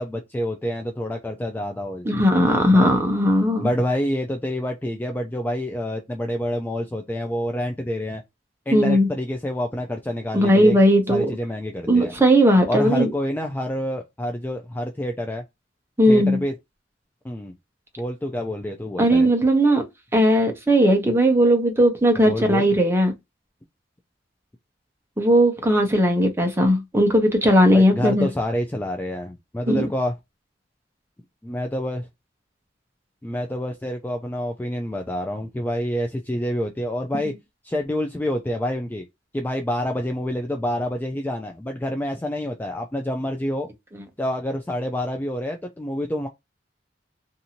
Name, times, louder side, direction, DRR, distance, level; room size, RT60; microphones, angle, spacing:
voice 1, 0.0-2.1 2.5-2.9 3.6-8.2 8.7-10.8 11.1-12.1 12.7-15.4 16.1-16.5 17.2-17.5 18.0-19.3 22.1-22.7 27.7-30.1 31.4-32.1 33.2-37.3 37.6-39.0 39.3-43.7 44.2-46.3, left 1 dB, 10° left, 0.3 m, -27 dB
voice 2, 2.0-3.7 8.7-9.1 10.3-11.3 11.9-13.1 16.0-16.4 19.0-19.8 20.1-23.1 25.2-28.3 29.7-29.9, equal, 15° right, 0.7 m, -17 dB
2.6 x 2.6 x 2.8 m
head